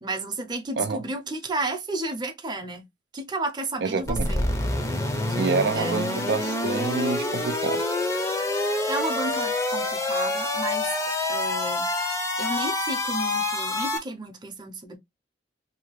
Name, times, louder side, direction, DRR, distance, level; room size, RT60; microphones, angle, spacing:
voice 1, 0.0-2.8 3.1-4.5 5.3-5.4 5.8-6.3 8.6-11.0 11.3-11.9 12.4-15.0, right 2 dB, 25° right, 0.6 m, -32 dB
voice 2, 3.8-4.3 5.3-7.8, right 4 dB, 75° right, 0.4 m, -27 dB
sound 1, 4.0-14.0, left 2 dB, 20° left, 0.6 m, -27 dB
2.7 x 2.3 x 2.9 m
head